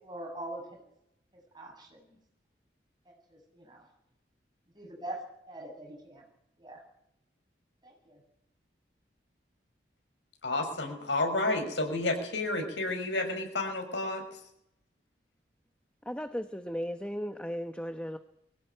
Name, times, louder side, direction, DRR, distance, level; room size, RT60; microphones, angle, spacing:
voice 1, 0.0-0.6 1.5-2.1 3.3-3.8 4.7-6.2 6.6-6.8 7.8-8.2, right 1 dB, 25° right, 1 dB, 7.9 m, -43 dB
voice 2, 10.4-14.2, left 2 dB, 85° left, 5 dB, 6.2 m, -30 dB
voice 3, 16.1-18.2, equal, 5° left, 8 dB, 0.9 m, -36 dB
23.0 x 17.5 x 9.1 m, 0.80 s
head